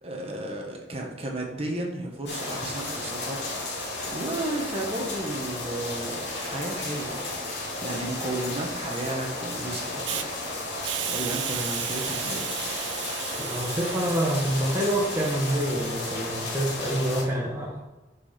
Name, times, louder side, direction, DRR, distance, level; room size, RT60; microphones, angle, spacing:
voice 1, 0.0-3.8 4.1-10.3 11.1-12.5, right 1 dB, 35° right, 1 dB, 1.3 m, -33 dB
sound 1, 2.3-17.2, left 2 dB, 75° left, 2.7 m, -33 dB
Hiss, 10.0-10.2 10.8-16.0, right 14 dB, 85° right, 0.4 m, -35 dB
voice 2, 13.4-17.8, right 1 dB, 15° right, -3 dB, 1.2 m, -27 dB
6.2 x 6.1 x 5.7 m, 1.1 s
head